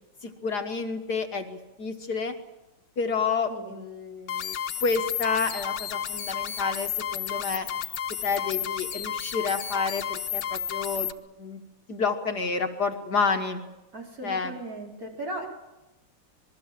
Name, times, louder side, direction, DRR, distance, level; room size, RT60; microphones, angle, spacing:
voice 1, 0.2-2.4 3.0-4.6 4.8-7.7 8.2-11.1 11.4-11.6 11.9-13.6 14.2-14.5, left 5 dB, 55° left, 5 dB, 1.8 m, -29 dB
sound 1, 4.3-11.1, left 9 dB, 80° left, 1.9 m, -32 dB
voice 2, 13.9-15.5, right 1 dB, 40° right, 0 dB, 4.8 m, -37 dB
26.5 x 21.0 x 7.6 m, 1.0 s
omnidirectional pair, 2.3 m